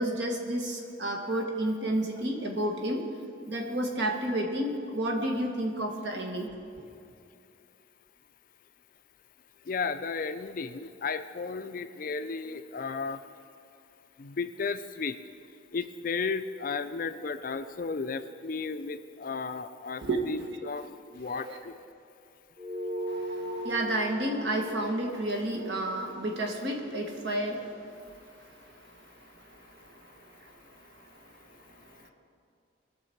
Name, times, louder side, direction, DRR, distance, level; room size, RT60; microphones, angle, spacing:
voice 1, 0.0-3.1 3.5-6.5 20.0-20.2 21.4-21.6 23.1-32.1, right 1 dB, 65° right, 2 dB, 1.6 m, -32 dB
voice 2, 9.7-13.2 14.2-15.2 15.7-21.8, left 4 dB, 45° left, 11 dB, 0.4 m, -34 dB
sound 1, 22.6-27.4, right 1 dB, 45° right, 1.9 m, -39 dB
20.0 x 6.7 x 4.5 m, 2.5 s
head